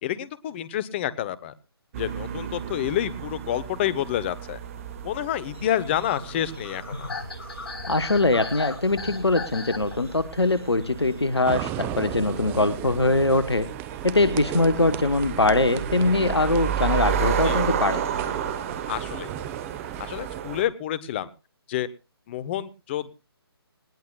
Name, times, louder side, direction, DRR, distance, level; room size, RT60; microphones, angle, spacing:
voice 1, 0.0-1.5 2.0-4.6 5.0-7.1 17.4-17.6 18.9-19.3 20.0-21.3 21.7-21.9 22.3-23.1, left 12 dB, 25° left, 19 dB, 0.9 m, -28 dB
sound 1, 1.9-20.6, right 7 dB, 35° right, 1.8 m, -33 dB
sound 2, 5.5-12.0, left 4 dB, 65° left, 2.2 m, -38 dB
voice 2, 7.9-13.7 14.0-18.0, left 2 dB, 85° left, 12 dB, 1.1 m, -22 dB
sound 3, 11.5-20.4, right 12 dB, 15° right, 0.6 m, -36 dB
20.0 x 18.0 x 2.3 m, 0.30 s
figure-of-eight pair, 140°, 13 cm